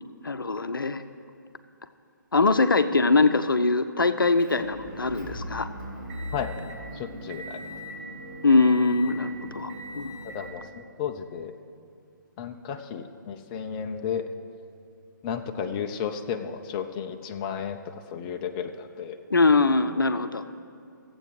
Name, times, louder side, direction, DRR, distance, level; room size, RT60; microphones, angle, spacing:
voice 1, 0.2-1.0 2.3-5.7 8.4-10.2 19.3-20.4, left 3 dB, 85° left, 10 dB, 0.6 m, -22 dB
Motor vehicle (road) / Engine, 4.4-10.5, equal, 30° right, 3.3 m, -39 dB
voice 2, 6.9-7.6 10.2-11.5 12.4-14.3 15.2-19.2, left 7 dB, 25° left, 6 dB, 0.5 m, -33 dB
15.0 x 7.9 x 4.8 m, 2.4 s
figure-of-eight pair, 140°, 11 cm